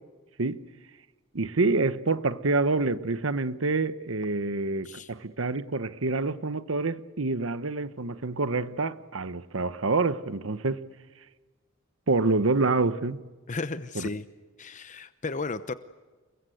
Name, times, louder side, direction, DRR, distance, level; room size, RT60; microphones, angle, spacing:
voice 1, 1.3-10.8 12.1-13.2 13.9-14.1, right 3 dB, 80° right, 1.0 m, -27 dB
voice 2, 13.5-14.2 14.6-15.7, left 3 dB, 40° left, 0.8 m, -34 dB
29.5 x 22.0 x 8.0 m
head